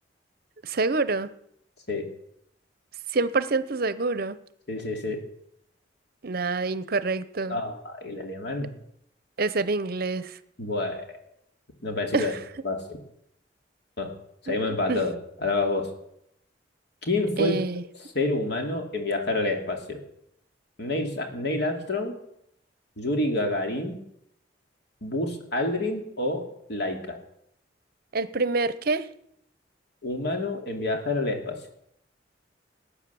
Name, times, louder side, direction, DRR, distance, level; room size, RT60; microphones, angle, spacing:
voice 1, 0.6-1.3 3.1-4.4 6.2-7.6 9.4-10.4 12.1-12.4 14.5-14.6 14.9-15.0 17.4-17.8 28.1-29.1, right 3 dB, 55° right, 15 dB, 0.8 m, -26 dB
voice 2, 4.7-5.2 7.5-8.7 10.6-11.2 11.8-12.3 12.6-13.0 14.0-14.1 14.4-15.1 15.4-15.9 17.0-17.6 18.1-20.0 20.8-22.2 23.0-24.0 25.0-27.2 30.0-31.6, left 2 dB, 65° left, 3 dB, 2.8 m, -28 dB
19.5 x 8.3 x 7.0 m, 0.75 s
head